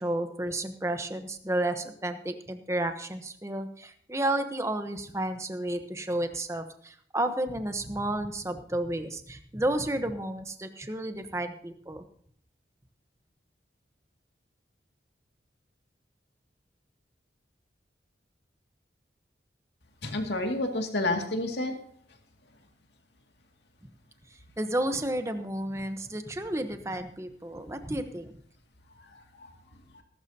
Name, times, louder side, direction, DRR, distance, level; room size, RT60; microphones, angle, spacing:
voice 1, 0.0-12.0 24.6-28.3, right 1 dB, 15° right, 8 dB, 1.0 m, -31 dB
voice 2, 20.0-21.8 29.0-29.6 29.9-30.0, left 2 dB, 75° left, 3 dB, 2.3 m, -30 dB
19.5 x 12.0 x 2.8 m, 0.62 s
head